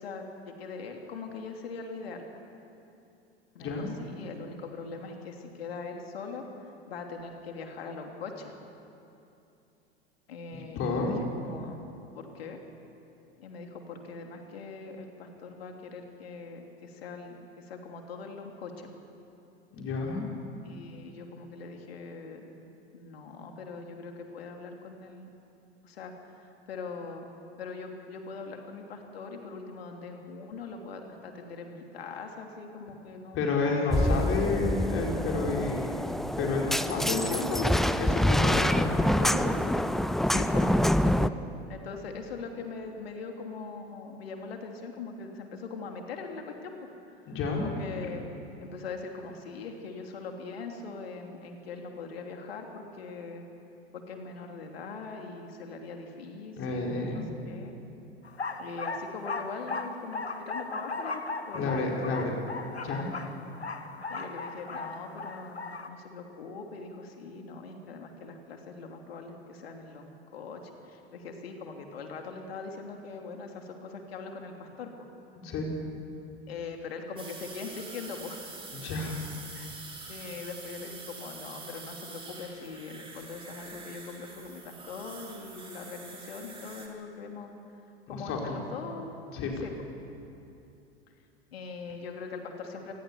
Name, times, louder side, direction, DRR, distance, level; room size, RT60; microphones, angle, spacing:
voice 1, 0.0-2.2 3.5-6.4 6.9-8.5 10.3-11.8 12.1-12.6 13.4-18.9 20.6-22.5 22.9-25.3 25.8-27.3 27.6-34.9 40.3-40.7 41.0-41.3 41.7-46.7 47.6-48.2 48.6-53.4 53.9-57.7 58.6-62.5 64.1-70.6 70.9-75.1 76.5-78.5 79.5-79.7 80.1-87.5 88.1-89.1 89.6-89.7 91.5-92.9, left 4 dB, 70° left, 3 dB, 3.1 m, -41 dB
voice 2, 10.8-11.2 19.7-20.2 33.3-36.0 36.4-39.8 47.3-47.7 56.5-57.2 61.5-62.3 62.8-63.1 75.4-75.7 78.7-79.2 88.1-88.5 89.3-89.5, left 3 dB, 40° left, -1 dB, 4.6 m, -30 dB
sound 1, 33.9-41.3, left 1 dB, ahead, 0.5 m, -26 dB
sound 2, 58.2-65.9, left 3 dB, 85° left, 1.3 m, -37 dB
sound 3, 77.2-86.9, right 3 dB, 15° right, 3.8 m, -45 dB
28.0 x 20.5 x 7.1 m, 2.8 s
figure-of-eight pair, 80°, 32 cm